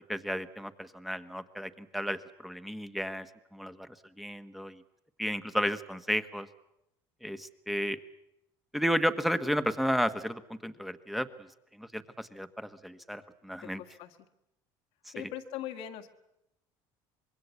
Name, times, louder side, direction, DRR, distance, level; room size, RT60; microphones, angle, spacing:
voice 1, 0.1-3.3 3.5-3.9 4.2-4.8 5.2-6.5 7.2-8.0 8.7-11.5 11.8-13.8 15.0-15.3, equal, ahead, 11 dB, 1.3 m, -33 dB
voice 2, 13.6-14.2 15.1-16.1, left 11 dB, 75° left, 3 dB, 1.9 m, -41 dB
25.5 x 21.5 x 8.3 m, 0.84 s
supercardioid pair, 105°, 11 cm